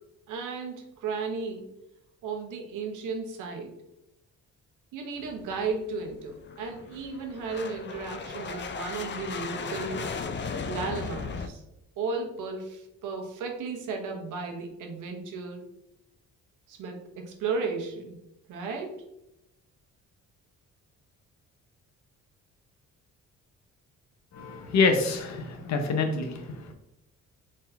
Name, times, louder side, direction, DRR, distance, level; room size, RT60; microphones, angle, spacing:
voice 1, 0.3-1.7 2.2-3.8 4.9-10.1 10.7-11.6 12.0-15.7 16.7-18.2 18.5-19.1, right 4 dB, 85° right, 2 dB, 1.0 m, -34 dB
sound 1, 5.2-11.5, left 5 dB, 40° left, 0.5 m, -36 dB
voice 2, 24.3-26.7, left 4 dB, 65° left, 5 dB, 0.9 m, -26 dB
4.3 x 3.6 x 2.7 m, 0.85 s
cardioid pair, 90°, 30 cm